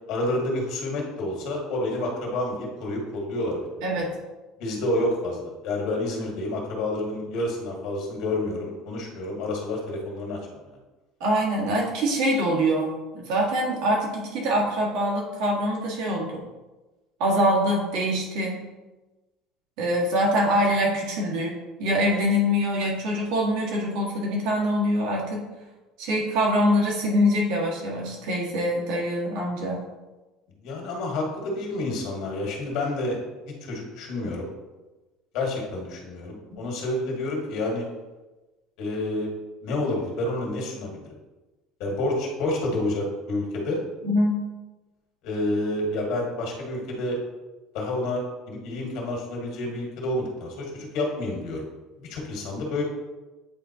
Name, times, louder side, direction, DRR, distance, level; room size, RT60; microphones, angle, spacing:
voice 1, 0.1-4.0 4.6-10.4 10.7-10.8 30.6-33.2 33.6-34.5 35.3-37.9 38.8-39.3 39.6-41.0 41.8-43.8 45.2-47.2 47.7-51.6 52.0-52.8, left 1 dB, 55° left, -1 dB, 1.7 m, -29 dB
voice 2, 11.2-16.4 17.2-18.7 19.8-25.4 26.0-29.9 44.0-44.4, equal, 65° right, -3 dB, 1.7 m, -24 dB
8.6 x 3.8 x 2.9 m, 1.1 s
cardioid pair, 160°, 0 cm